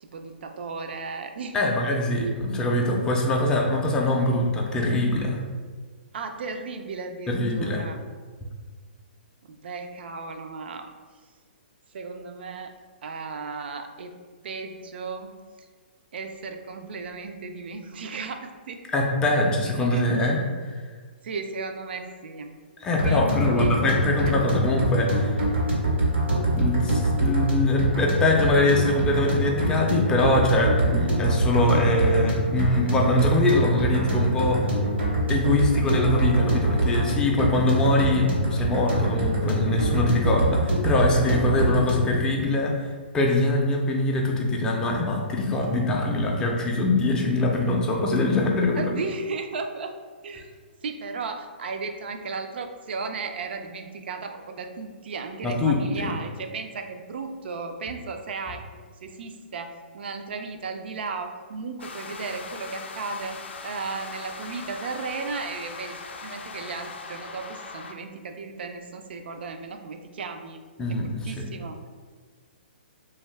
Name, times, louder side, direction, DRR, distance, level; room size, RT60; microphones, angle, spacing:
voice 1, 0.0-1.6 2.2-2.3 6.1-8.0 9.5-10.9 11.9-12.7 13.0-14.1 14.4-15.4 16.1-18.8 19.8-20.0 21.2-22.5 23.0-23.8 24.2-24.3 48.8-49.9 50.2-50.5 50.8-70.6 70.9-71.8, right 4 dB, 65° right, 6 dB, 0.3 m, -35 dB
voice 2, 1.5-5.4 7.3-7.8 18.9-20.8 22.8-25.4 26.6-34.7 35.3-42.9 43.1-48.8 55.4-56.1 70.8-71.4, left 2 dB, 10° left, 0 dB, 0.4 m, -23 dB
sound 1, 23.0-42.2, right 1 dB, 85° right, 1.1 m, -25 dB
sound 2, 61.8-67.9, left 4 dB, 80° left, 0.4 m, -40 dB
2.5 x 2.2 x 3.2 m, 1.5 s
hypercardioid pair, 145°, 6 cm